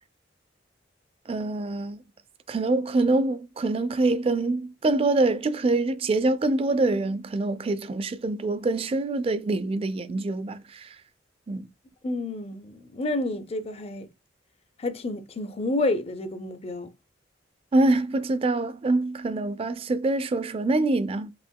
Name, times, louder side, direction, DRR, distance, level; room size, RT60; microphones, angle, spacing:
voice 1, 1.3-2.0 2.5-11.0 11.5-11.7 17.7-21.3, right 2 dB, 30° right, 0.3 m, -25 dB
voice 2, 12.0-14.1 14.8-16.9, left 2 dB, 35° left, 0.5 m, -29 dB
5.5 x 2.9 x 2.2 m
head